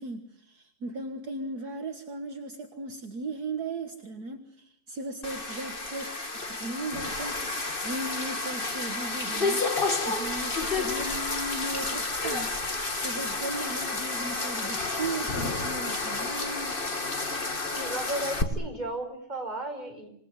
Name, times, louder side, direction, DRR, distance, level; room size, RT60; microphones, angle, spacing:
voice 1, 0.0-6.1 6.5-16.8, right 2 dB, 40° right, 5 dB, 1.5 m, -37 dB
sound 1, 5.2-18.4, left 3 dB, 25° left, 1.3 m, -31 dB
voice 2, 17.7-20.1, right 1 dB, 10° right, 3 dB, 4.8 m, -34 dB
27.5 x 19.5 x 9.7 m, 0.72 s
omnidirectional pair, 3.7 m